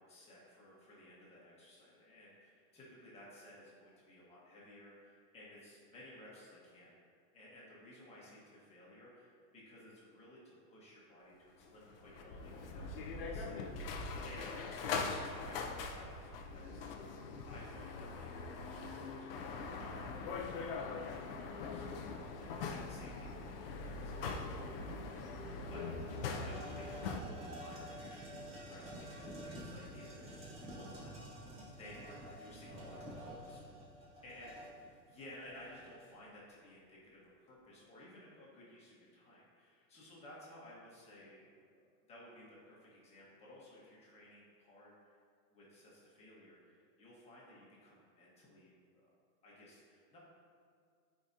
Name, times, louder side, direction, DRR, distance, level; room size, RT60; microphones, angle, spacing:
voice 1, 0.0-7.0 7.3-13.6 13.9-16.8 17.5-25.8 26.1-28.8 29.1-31.1 31.8-33.6 34.2-34.5 35.1-44.9 45.5-49.0 49.4-50.2, left 1 dB, 15° left, -6 dB, 1.3 m, -57 dB
sound 1, 11.6-27.2, left 4 dB, 35° left, 0.5 m, -42 dB
sound 2, 25.1-25.2 25.5-36.2, equal, 15° right, 0.6 m, -50 dB
12.0 x 5.0 x 2.7 m, 2.2 s
supercardioid pair, 160°, 49 cm